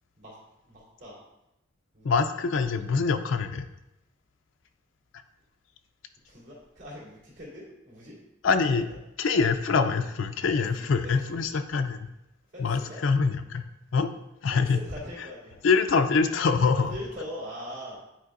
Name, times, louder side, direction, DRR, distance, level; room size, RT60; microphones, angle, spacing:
voice 1, 0.6-1.2 1.9-2.1 6.3-8.1 8.7-8.8 10.6-11.4 12.5-13.0 14.5-15.6 16.7-18.0, equal, 70° right, -7 dB, 2.3 m, -41 dB
voice 2, 2.0-3.7 8.4-8.9 9.2-12.1 12.6-14.1 14.4-14.8 15.2-15.3 15.6-16.9, left 5 dB, 75° left, 7 dB, 0.4 m, -25 dB
9.4 x 4.4 x 2.5 m, 0.90 s
head